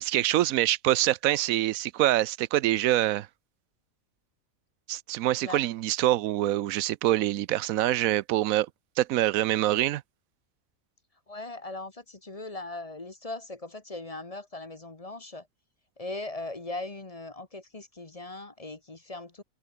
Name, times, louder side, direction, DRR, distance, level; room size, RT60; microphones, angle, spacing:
voice 1, 0.0-3.3 4.9-8.7 9.0-10.0, right 14 dB, 90° right, 1.0 m, -25 dB
voice 2, 11.3-15.5 16.0-19.4, left 2 dB, 25° left, 1.5 m, -39 dB
omnidirectional pair, 1.4 m